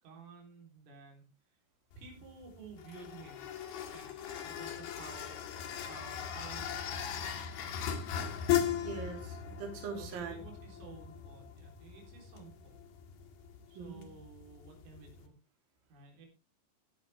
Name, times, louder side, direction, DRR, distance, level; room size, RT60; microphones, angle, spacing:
voice 1, 0.0-1.2 2.0-3.5 3.9-5.3 5.9-7.3 9.9-12.8 13.7-15.3 15.9-16.3, right 5 dB, 80° right, 1 dB, 6.4 m, -53 dB
sound 1, 1.9-15.3, left 9 dB, 60° left, 3.2 m, -38 dB
voice 2, 8.8-10.4 13.7-14.0, right 5 dB, 50° right, 2 dB, 4.8 m, -41 dB
15.5 x 11.5 x 3.5 m, 0.29 s
omnidirectional pair, 5.9 m